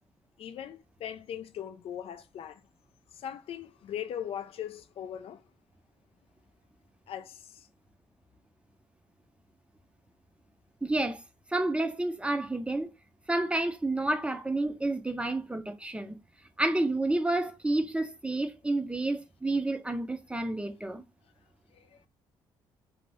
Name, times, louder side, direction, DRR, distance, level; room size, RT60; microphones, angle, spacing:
voice 1, 0.4-2.6 3.1-5.5 7.1-7.7 21.7-22.1, left 9 dB, 60° left, 0.4 m, -40 dB
voice 2, 10.8-11.2 11.5-12.9 13.3-16.2 16.6-21.0, right 2 dB, 10° right, 0.5 m, -30 dB
2.7 x 2.5 x 3.1 m
cardioid pair, 80°, 11 cm